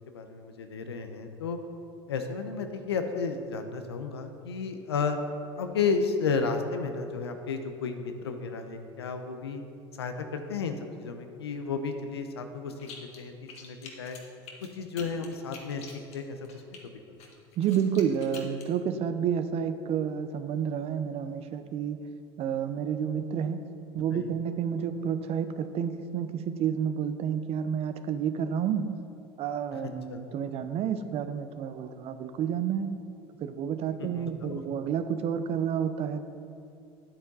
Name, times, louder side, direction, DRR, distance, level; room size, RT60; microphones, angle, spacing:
voice 1, 0.1-1.6 2.1-5.2 5.6-9.6 10.0-14.2 14.7-15.8 16.1-16.6 24.0-24.4 30.1-30.2 34.0-34.6, left 5 dB, 90° left, 6 dB, 0.8 m, -33 dB
sound 1, 12.8-13.2 13.5-16.8 17.2-18.7, left 5 dB, 55° left, 1.6 m, -47 dB
voice 2, 17.6-22.0 22.4-23.6 23.9-28.9 29.4-32.9 33.4-36.2, right 8 dB, 50° right, 10 dB, 0.7 m, -30 dB
9.5 x 8.6 x 4.0 m, 2.6 s
hypercardioid pair, 75°, 13 cm